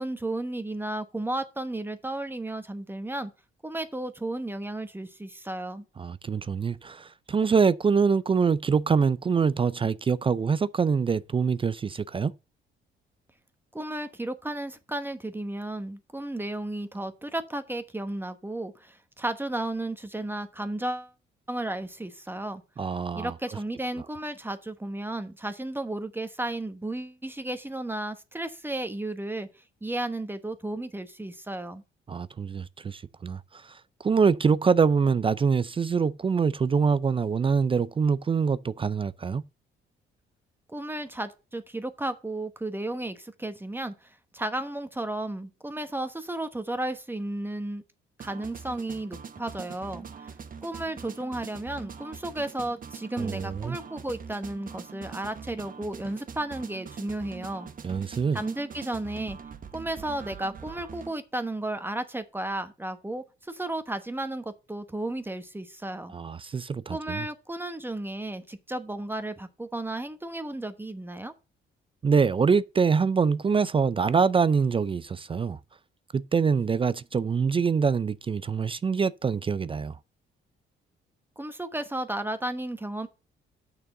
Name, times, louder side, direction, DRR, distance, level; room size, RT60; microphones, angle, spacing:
voice 1, 0.0-3.3 3.6-5.8 13.7-21.1 21.5-22.6 23.1-29.5 29.8-31.8 40.7-47.8 48.2-50.3 50.6-57.7 58.3-59.4 59.7-66.1 66.9-71.3 81.4-83.1, right 1 dB, 10° right, 1.1 m, -33 dB
voice 2, 6.0-12.3 22.8-23.3 32.1-39.4 53.2-53.8 57.8-58.4 66.1-67.2 72.0-75.6 76.1-80.0, right 5 dB, 25° right, 0.4 m, -25 dB
sound 1, 48.2-61.1, right 6 dB, 45° right, 1.1 m, -43 dB
6.8 x 6.1 x 6.5 m
cardioid pair, 90°, 20 cm